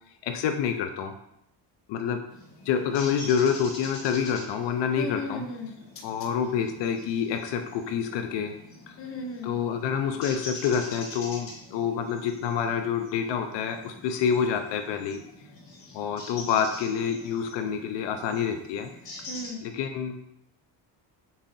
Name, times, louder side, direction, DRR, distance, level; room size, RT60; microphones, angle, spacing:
voice 1, 0.2-1.1 1.9-2.2 2.7-5.4 6.0-8.5 8.9-9.0 9.4-15.2 15.9-18.9 19.6-20.2, left 7 dB, 70° left, 6 dB, 0.5 m, -27 dB
sound 1, 2.3-19.5, left 2 dB, 55° left, 1.6 m, -45 dB
voice 2, 5.0-6.3 9.0-9.5 19.3-19.6, left 2 dB, 30° left, 2 dB, 0.6 m, -36 dB
7.0 x 2.7 x 2.6 m, 0.80 s
cardioid pair, 160°, 44 cm